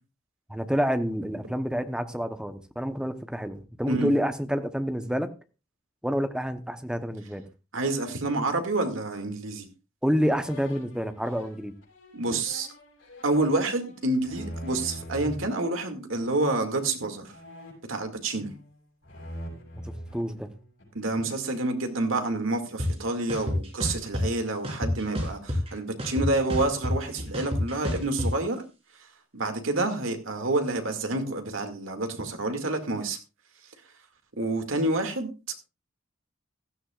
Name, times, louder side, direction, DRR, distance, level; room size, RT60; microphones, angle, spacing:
voice 1, 0.5-5.3 6.0-7.4 10.0-11.7 19.7-20.5, equal, 5° right, 9 dB, 0.9 m, -28 dB
voice 2, 7.7-9.7 12.1-12.7 13.2-17.3 17.9-18.5 20.9-28.6 29.3-33.2 34.4-35.3, right 2 dB, 75° right, 6 dB, 2.3 m, -28 dB
sound 1, 10.2-15.5 16.1-16.6 17.3-18.7 19.0-21.0, equal, 65° left, 6.0 m, -43 dB
sound 2, 22.8-22.9 23.3-24.2 24.6-25.7 26.0-28.3, left 1 dB, 30° right, 3.9 m, -29 dB
16.0 x 13.5 x 2.4 m, 0.30 s
head